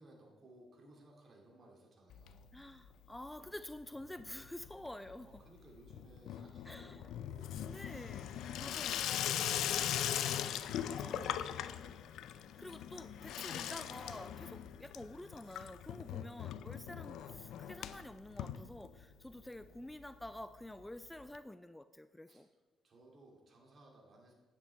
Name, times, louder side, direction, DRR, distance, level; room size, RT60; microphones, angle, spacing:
voice 1, 0.0-2.5 5.2-7.6 8.2-12.0 14.3-14.7 19.2-19.7 22.3-22.5 22.8-24.3, right 1 dB, 45° right, -1 dB, 2.6 m, -61 dB
Water tap faucet / Sink (filling or washing), 2.1-2.9 3.1-3.7 4.0-19.3 19.6-19.7 19.9-20.0 20.2-20.3 21.3-21.4, left 10 dB, 80° left, 0.4 m, -40 dB
voice 2, 2.5-5.4 6.7-7.0 7.7-8.3 8.6-9.1 10.8-11.3 12.3-22.5, left 1 dB, 10° left, 11 dB, 0.3 m, -49 dB
10.0 x 8.2 x 3.4 m, 1.3 s
cardioid pair, 90°, 0 cm